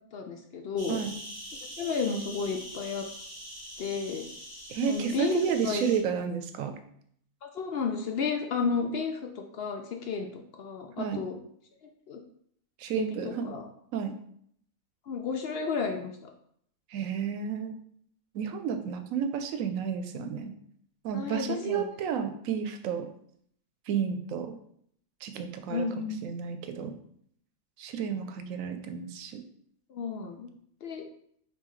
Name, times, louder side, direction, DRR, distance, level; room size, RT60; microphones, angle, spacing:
voice 1, 0.1-1.0 1.8-3.1 3.8-4.3 4.8-5.8 7.4-11.3 12.1-12.2 13.0-13.1 13.4-13.6 15.1-16.3 21.1-21.9 25.7-26.2 29.9-30.5 30.8-31.0, left 5 dB, 60° left, 3 dB, 0.7 m, -32 dB
sound 1, 0.8-6.0, equal, 20° right, 1.3 m, -44 dB
voice 2, 4.7-6.7 11.0-11.2 12.8-13.6 13.9-14.2 16.9-17.8 18.3-20.5 21.0-23.1 23.9-24.6 25.2-27.0 27.8-29.4, right 7 dB, 90° right, 7 dB, 1.0 m, -31 dB
5.4 x 2.8 x 3.1 m, 0.66 s
omnidirectional pair, 1.4 m